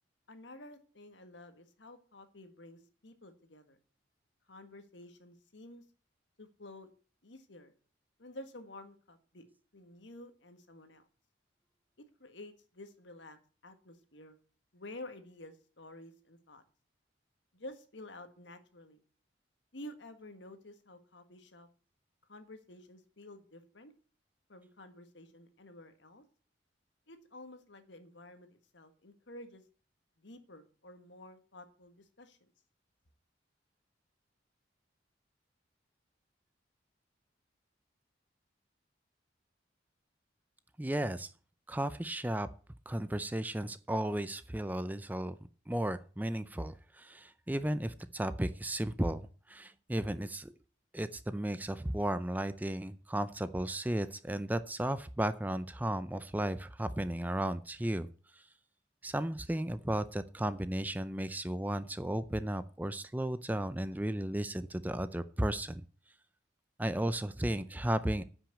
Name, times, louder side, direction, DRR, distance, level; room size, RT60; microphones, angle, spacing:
voice 1, 0.3-3.8 4.5-5.8 6.4-6.9 7.2-7.7 8.2-9.4 9.7-11.1 12.0-14.4 14.7-16.6 17.5-19.0 19.7-21.7 22.3-23.9 24.5-26.2 27.1-29.6 30.2-32.5, left 1 dB, 70° left, 9 dB, 1.6 m, -51 dB
voice 2, 40.8-41.3 41.7-42.5 42.9-45.3 45.7-49.2 49.5-50.5 50.9-58.1 59.0-65.8 66.8-68.2, right 1 dB, 10° right, 13 dB, 0.4 m, -34 dB
9.9 x 6.2 x 8.2 m, 0.40 s
head